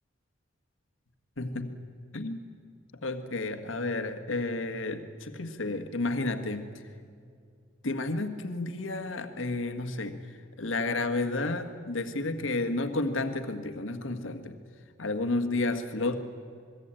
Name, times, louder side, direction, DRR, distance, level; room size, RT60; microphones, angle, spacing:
voice 1, 1.4-1.7 2.1-2.4 3.0-6.7 7.8-14.6 15.0-16.2, left 2 dB, 80° left, 7 dB, 1.7 m, -31 dB
27.0 x 21.5 x 9.0 m, 2.3 s
head